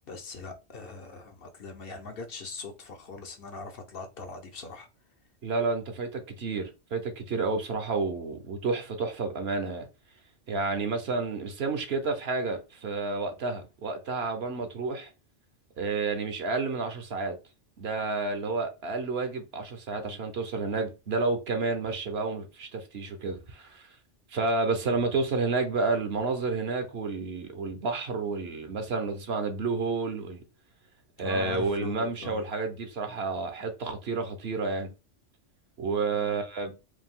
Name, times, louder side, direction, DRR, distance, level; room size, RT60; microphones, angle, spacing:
voice 1, 0.1-4.9 20.0-20.2 24.8-24.9 31.2-32.4 36.1-36.4, left 4 dB, 55° left, 0.9 m, -41 dB
voice 2, 5.4-9.9 10.5-15.1 15.8-17.4 17.8-23.8 24.3-30.4 31.2-34.9 35.8-36.7, right 3 dB, 60° right, 1.0 m, -30 dB
4.8 x 2.3 x 3.7 m
omnidirectional pair, 1.2 m